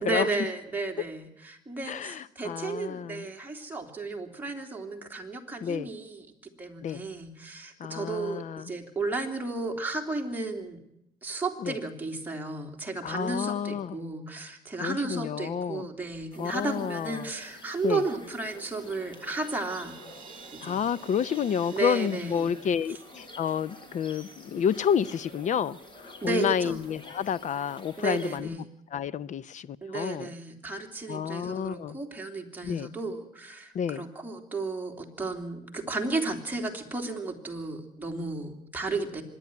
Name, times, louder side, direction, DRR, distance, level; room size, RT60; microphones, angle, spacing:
voice 1, 0.0-6.3 6.6-10.8 11.2-20.0 20.5-20.8 21.7-22.5 26.2-26.8 28.0-28.7 29.8-39.2, right 3 dB, 10° right, 3.1 m, -33 dB
voice 2, 1.9-3.2 5.6-5.9 6.8-7.0 7.8-8.7 11.6-11.8 13.0-14.0 14.8-15.9 16.4-17.3 17.8-18.0 20.6-25.8 26.0-28.6 28.9-30.3 31.1-32.0 32.6-32.9 33.7-34.0, left 8 dB, 45° left, 0.7 m, -30 dB
sound 1, 16.3-28.4, left 1 dB, 30° left, 4.3 m, -49 dB
Crash cymbal, 18.8-23.7, right 6 dB, 30° right, 3.5 m, -51 dB
25.0 x 11.0 x 9.7 m
cardioid pair, 110°, 17 cm